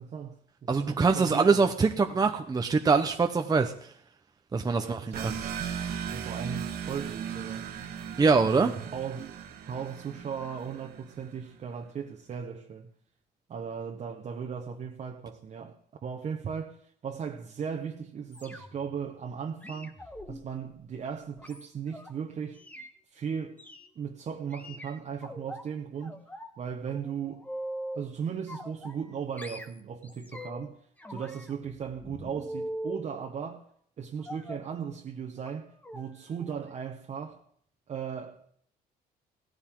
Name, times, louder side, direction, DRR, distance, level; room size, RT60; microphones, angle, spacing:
voice 1, 0.0-1.7 2.1-2.4 4.8-5.5 6.1-7.7 8.4-9.4 9.7-12.9 13.5-20.0 20.3-22.6 23.1-23.6 23.9-26.2 26.6-27.5 27.9-30.8 31.1-33.6 34.0-37.4 37.9-38.5, right 7 dB, 45° right, 1.4 m, -37 dB
voice 2, 0.7-3.7 4.5-5.3 8.2-8.7, right 4 dB, 20° right, 1.0 m, -24 dB
sound 1, 5.1-11.4, right 8 dB, 65° right, 1.8 m, -37 dB
sound 2, 18.3-18.9 19.6-22.1 22.6-22.9 23.6-23.9 24.5-25.6 26.0-26.6 26.9-28.1 28.5-29.1 29.4-30.7 31.0-33.1 34.3-34.7 35.4-35.6 35.8-36.1 36.4-36.6 36.9-37.0, equal, 10° left, 1.4 m, -42 dB
16.5 x 14.5 x 3.9 m
cardioid pair, 110°, 17 cm